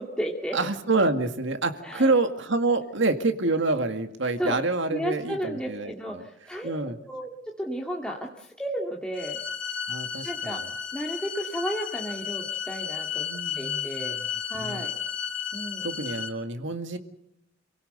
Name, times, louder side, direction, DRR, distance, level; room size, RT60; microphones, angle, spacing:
voice 1, 0.0-0.6 1.8-2.1 4.4-4.6 4.9-6.7 7.1-9.4 10.2-10.6 10.9-13.3 13.6-14.2 14.5-14.9 15.5-15.8, equal, 5° left, -1 dB, 2.2 m, -33 dB
voice 2, 0.5-6.2 6.6-7.0 9.9-10.6 13.1-14.2 14.6-14.9 15.8-17.0, right 3 dB, 60° right, 7 dB, 2.1 m, -27 dB
sound 1, 9.1-16.3, left 8 dB, 65° left, 2.8 m, -33 dB
28.5 x 18.0 x 6.8 m, 0.82 s
head